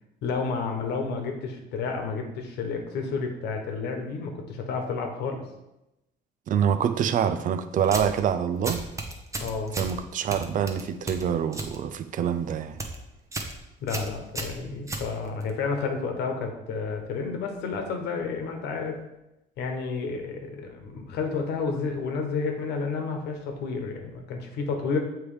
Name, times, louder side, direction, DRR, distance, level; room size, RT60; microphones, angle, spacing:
voice 1, 0.2-5.4 9.4-9.7 13.8-19.0 19.6-25.0, left 4 dB, 80° left, 1.2 m, -31 dB
voice 2, 6.5-8.8 9.8-12.8, right 8 dB, 50° right, 0.5 m, -26 dB
sound 1, 7.8-8.2 8.6-9.9 10.3-11.8 12.1-12.4 12.7-13.0 13.3-13.6 13.9-15.5, right 2 dB, 20° right, 0.9 m, -34 dB
7.1 x 3.3 x 5.0 m
cardioid pair, 110°, 17 cm